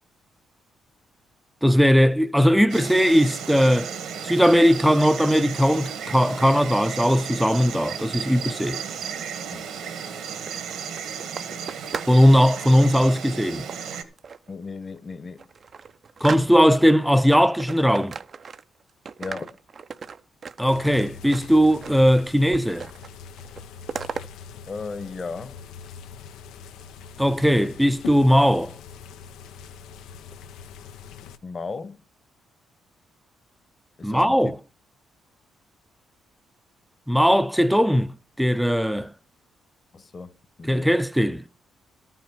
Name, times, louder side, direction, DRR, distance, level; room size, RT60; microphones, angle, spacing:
voice 1, 1.6-3.9 4.2-8.8 12.0-13.7 16.2-18.1 20.6-22.9 27.2-28.7 34.0-34.6 37.1-39.1 40.7-41.4, equal, ahead, 0.6 m, -19 dB
Insect, 2.7-14.0, right 7 dB, 80° right, 2.0 m, -34 dB
sound 1, 10.2-12.2 12.5-12.9 13.7-14.5 15.0-15.1 15.4-16.9 17.3-18.8 19.1-22.2 22.5-23.1 23.4-24.2, right 6 dB, 45° right, 0.6 m, -37 dB
voice 2, 14.5-15.5 19.2-19.6 24.7-25.6 31.4-32.0 34.0-34.4 39.9-41.0, left 4 dB, 35° left, 1.1 m, -36 dB
sound 2, 20.7-31.4, left 7 dB, 90° left, 0.8 m, -43 dB
13.5 x 6.0 x 7.1 m
cardioid pair, 90°, 0 cm